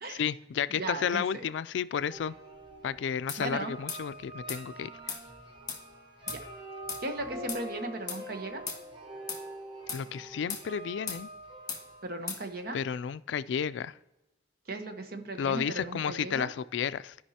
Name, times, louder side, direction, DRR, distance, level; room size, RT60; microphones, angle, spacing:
voice 1, 0.1-2.3 2.8-5.2 9.9-11.3 12.7-13.9 15.4-17.2, left 7 dB, 70° left, 16 dB, 0.3 m, -32 dB
voice 2, 0.7-1.4 3.4-3.7 6.3-6.4 7.0-8.6 12.0-12.8 14.7-16.5, right 2 dB, 55° right, 6 dB, 1.0 m, -37 dB
sound 1, 2.1-12.0, right 1 dB, 30° right, 1.2 m, -45 dB
sound 2, 3.3-3.4 3.9-4.0 4.5-4.6 5.1-5.2 5.7-5.8 6.3-6.4 6.9-7.0 7.5-7.6 8.1-8.2 8.7-8.8 9.3-9.4 9.9-10.0 10.5-10.7 11.1-11.2 11.7-11.8 12.3-12.4, left 5 dB, 20° left, 1.6 m, -37 dB
14.5 x 5.3 x 2.8 m, 1.0 s
head